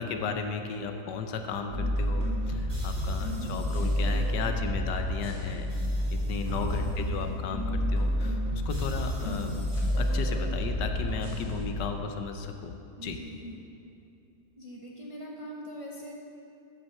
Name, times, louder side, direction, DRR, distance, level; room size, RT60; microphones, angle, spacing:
voice 1, 0.0-5.7 6.1-9.5 9.8-12.7 13.0-13.2, left 5 dB, 75° left, 6 dB, 1.3 m, -35 dB
sound 1, 1.7-11.7, equal, 40° right, 3.4 m, -29 dB
voice 2, 3.4-3.8 6.6-6.9 13.0-13.6 14.6-16.2, equal, 25° right, -3 dB, 0.8 m, -42 dB
13.5 x 6.0 x 5.4 m, 2.8 s
omnidirectional pair, 1.9 m